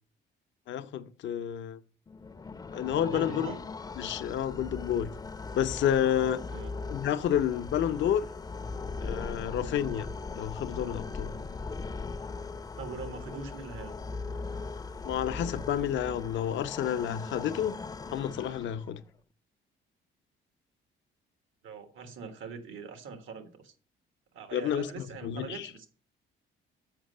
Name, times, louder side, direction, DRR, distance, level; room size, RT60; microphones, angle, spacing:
voice 1, 0.7-1.8 2.7-3.5 4.0-5.1 5.5-6.4 6.9-8.3 9.0-10.1 10.3-11.3 15.0-17.8 18.1-19.0 24.5-24.9 25.2-25.7, left 9 dB, 70° left, 0.6 m, -30 dB
sound 1, 2.1-19.0, left 4 dB, 20° left, 0.5 m, -39 dB
voice 2, 3.0-3.6 6.5-6.7 12.8-14.0 21.6-23.7 24.3-25.9, right 4 dB, 80° right, 1.5 m, -42 dB
7.5 x 5.3 x 6.4 m
cardioid pair, 90°, 20 cm